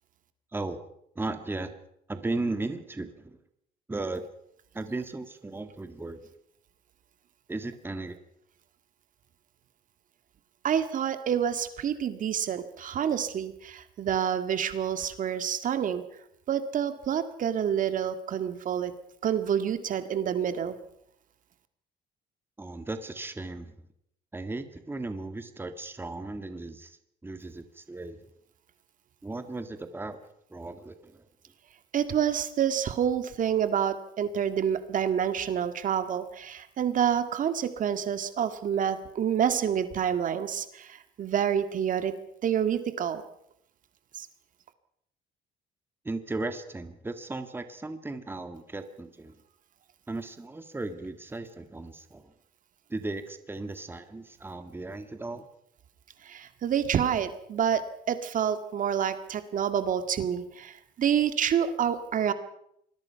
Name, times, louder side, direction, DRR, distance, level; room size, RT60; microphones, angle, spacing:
voice 1, 1.2-1.7 2.1-3.4 3.9-4.3 4.7-6.3 7.5-8.2 22.6-23.8 24.3-27.0 27.2-28.2 29.2-30.2 30.5-31.3 46.0-49.4 50.1-52.3 52.9-55.5, right 2 dB, 15° right, 8 dB, 1.8 m, -36 dB
voice 2, 10.6-16.0 16.5-18.9 19.2-20.8 31.9-42.1 42.4-43.2 44.1-44.3 56.3-57.8 58.1-62.3, right 8 dB, 50° right, 9 dB, 1.9 m, -28 dB
26.0 x 21.0 x 5.8 m, 0.75 s
cardioid pair, 110°, 17 cm